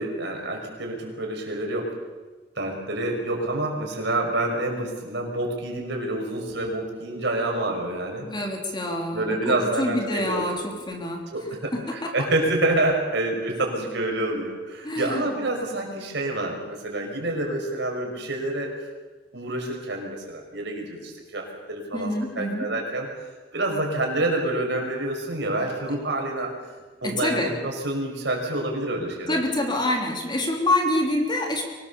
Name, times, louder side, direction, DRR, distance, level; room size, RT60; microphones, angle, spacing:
voice 1, 0.0-1.9 2.6-8.3 9.1-10.4 11.3-18.7 19.3-23.1 23.5-26.6 27.0-29.4, right 2 dB, 65° right, 1 dB, 5.6 m, -27 dB
voice 2, 8.2-11.3 11.7-12.1 14.8-15.2 21.9-22.7 27.0-27.5 29.3-31.6, left 1 dB, 25° left, 2 dB, 3.3 m, -26 dB
24.5 x 18.5 x 7.0 m, 1.3 s
head